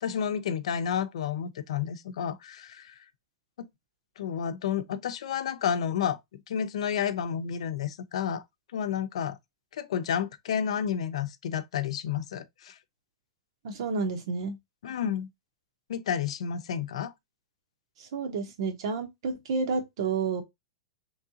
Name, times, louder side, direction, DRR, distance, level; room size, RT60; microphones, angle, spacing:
voice 1, 0.0-2.9 3.6-3.7 4.2-8.4 8.7-9.4 9.7-12.8 14.8-15.3 15.9-17.1, left 8 dB, 80° left, 0.6 m, -31 dB
voice 2, 13.6-14.6 18.0-20.4, right 4 dB, 60° right, 1.1 m, -30 dB
3.6 x 3.2 x 2.7 m
supercardioid pair, 160°, 3 cm